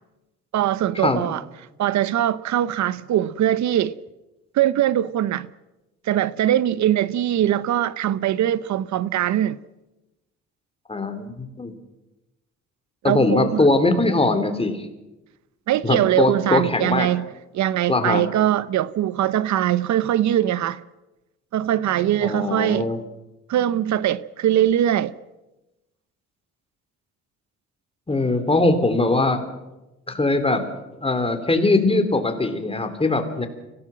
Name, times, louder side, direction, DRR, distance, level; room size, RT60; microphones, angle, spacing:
voice 1, 0.5-1.4 1.8-3.9 4.5-5.5 6.0-9.6 13.0-13.7 15.7-17.3 17.5-20.8 21.5-22.9 23.5-25.1, right 12 dB, 70° right, 0.8 m, -21 dB
voice 2, 10.9-11.7 13.0-14.9 15.8-17.1 17.9-18.2 22.2-23.0 28.1-29.4 30.1-30.6 31.0-33.5, left 2 dB, 20° left, 3.3 m, -21 dB
24.5 x 17.5 x 7.6 m
cardioid pair, 90°, 30 cm